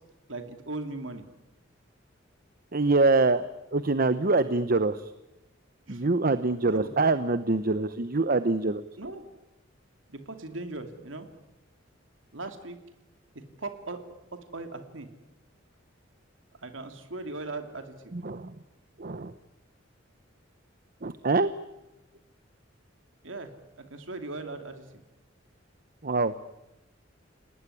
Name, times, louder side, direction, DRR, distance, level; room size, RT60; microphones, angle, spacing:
voice 1, 0.3-1.2 5.9-6.0 6.6-6.9 9.0-9.3 10.1-11.3 12.3-12.8 13.3-14.0 14.3-15.1 16.6-18.1 23.2-23.5 23.8-24.8, right 2 dB, 90° right, 7 dB, 2.7 m, -38 dB
voice 2, 2.7-5.1 5.9-8.8 18.1-18.5 19.0-19.3 21.0-21.5 26.0-26.3, right 3 dB, 50° right, 13 dB, 0.9 m, -25 dB
29.0 x 19.0 x 9.9 m, 0.98 s
head